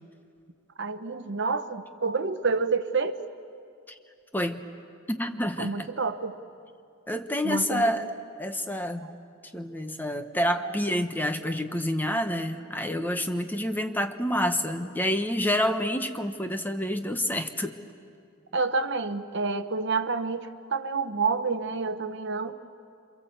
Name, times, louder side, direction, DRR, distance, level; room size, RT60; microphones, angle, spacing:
voice 1, 0.8-3.2 5.6-6.4 7.4-7.9 9.0-9.1 10.6-11.0 18.5-22.5, right 4 dB, 55° right, 10 dB, 1.0 m, -29 dB
voice 2, 4.3-4.7 5.1-5.9 7.1-8.1 8.4-9.1 9.5-17.8, equal, 10° left, 7 dB, 0.9 m, -28 dB
27.5 x 25.5 x 7.8 m, 2.5 s
head